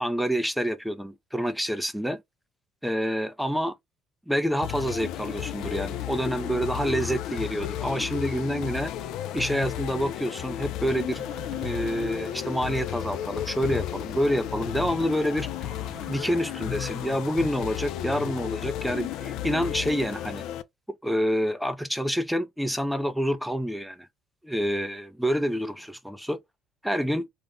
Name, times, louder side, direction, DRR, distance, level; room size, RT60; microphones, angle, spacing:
voice 1, 0.0-2.2 2.8-3.7 4.3-8.9 9.3-11.2 11.6-15.5 16.1-20.4 21.0-24.1 24.4-26.4 26.8-27.2, equal, ahead, 0.4 m, -27 dB
sound 1, 4.6-20.6, left 11 dB, 70° left, 0.3 m, -33 dB
sound 2, 11.1-17.2, right 11 dB, 70° right, 0.4 m, -49 dB
2.4 x 2.1 x 3.4 m
cardioid pair, 115°, 0 cm